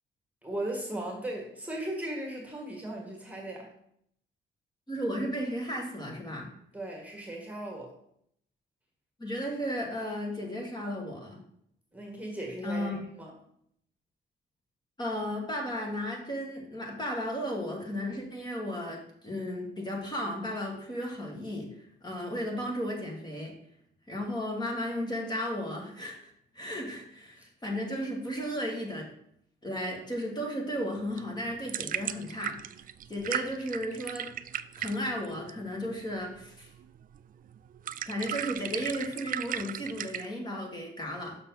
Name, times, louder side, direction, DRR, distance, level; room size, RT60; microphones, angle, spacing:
voice 1, 0.4-3.7 6.7-7.9 11.9-13.3 27.4-27.5, right 1 dB, 5° right, 0 dB, 1.7 m, -37 dB
voice 2, 4.9-6.5 9.2-11.4 12.6-13.0 15.0-21.7 22.0-23.5 24.1-29.1 29.6-32.6 33.1-34.3 34.8-36.7 38.1-41.4, equal, 20° left, 0 dB, 2.0 m, -34 dB
sound 1, 31.0-40.3, right 10 dB, 45° right, 0.4 m, -37 dB
6.5 x 5.9 x 3.9 m, 0.70 s
cardioid pair, 90°, 20 cm